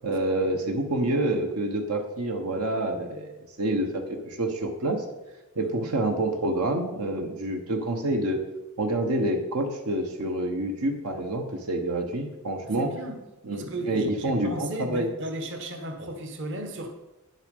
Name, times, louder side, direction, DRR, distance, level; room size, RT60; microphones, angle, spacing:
voice 1, 0.0-3.3 3.6-5.0 5.5-8.4 8.8-12.9 13.5-15.1, right 1 dB, 80° right, 3 dB, 1.3 m, -27 dB
voice 2, 5.6-6.0 12.8-13.2 13.5-16.9, right 1 dB, 55° right, 5 dB, 1.3 m, -35 dB
10.0 x 8.1 x 5.4 m, 1.0 s
head